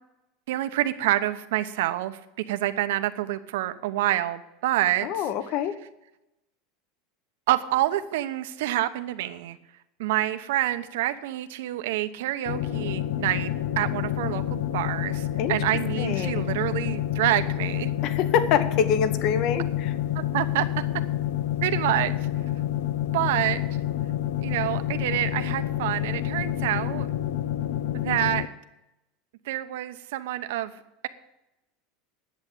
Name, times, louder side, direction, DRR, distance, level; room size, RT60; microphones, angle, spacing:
voice 1, 0.5-2.2 2.5-5.1 7.5-9.6 10.0-17.9 20.1-20.6 21.6-22.1 23.1-23.6 24.4-27.1 28.0-28.5 29.4-30.7, right 14 dB, 80° right, 11 dB, 0.9 m, -27 dB
voice 2, 5.0-5.8 15.4-15.6 16.0-16.4 18.0-19.9, left 8 dB, 45° left, 12 dB, 1.0 m, -25 dB
sound 1, 12.5-28.5, left 12 dB, 85° left, 0.7 m, -28 dB
10.5 x 8.0 x 8.6 m, 0.92 s
supercardioid pair, 155°, 0 cm